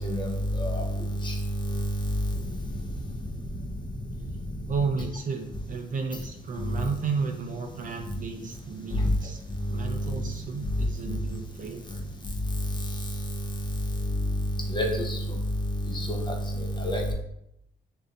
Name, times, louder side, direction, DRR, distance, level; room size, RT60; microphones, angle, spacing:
voice 1, 0.0-0.9 1.2-1.4 1.7-1.8 8.9-9.1 14.1-14.3 14.7-15.2 15.8-17.1, equal, 25° left, 2 dB, 0.7 m, -28 dB
voice 2, 4.7-9.4 9.7-12.0, right 5 dB, 40° right, 3 dB, 0.5 m, -33 dB
3.4 x 2.8 x 2.4 m, 0.78 s
cardioid pair, 90°, 20 cm